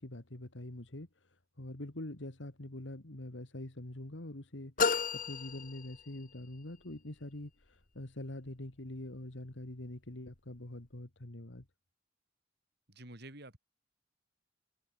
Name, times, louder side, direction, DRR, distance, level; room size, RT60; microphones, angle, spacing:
voice 1, 0.0-11.7, left 1 dB, 70° left, 2.1 m, -45 dB
sound 1, 4.8-6.5, left 5 dB, 45° left, 1.5 m, -33 dB
voice 2, 12.9-13.6, right 1 dB, 60° right, 7.4 m, -49 dB
head